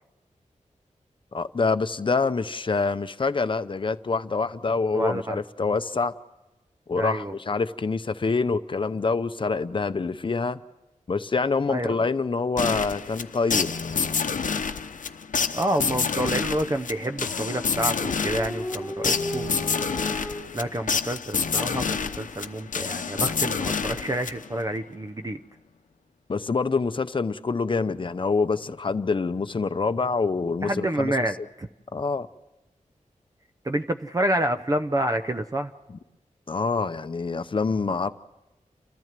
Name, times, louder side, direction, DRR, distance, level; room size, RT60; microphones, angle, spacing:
voice 1, 1.3-6.1 6.9-10.6 11.1-13.7 26.3-31.1 31.9-32.3 36.5-38.1, left 4 dB, 40° left, 0.7 m, -26 dB
voice 2, 4.9-5.4 6.9-7.3 11.7-11.9 15.5-19.8 20.2-25.4 30.6-31.7 33.6-35.7, right 1 dB, 25° right, 0.7 m, -28 dB
sound 1, 12.6-24.7, left 5 dB, 75° left, 0.8 m, -28 dB
Dog, 16.9-20.4, left 1 dB, 10° left, 2.9 m, -35 dB
29.5 x 14.0 x 7.5 m
wide cardioid pair, 115°, 13 cm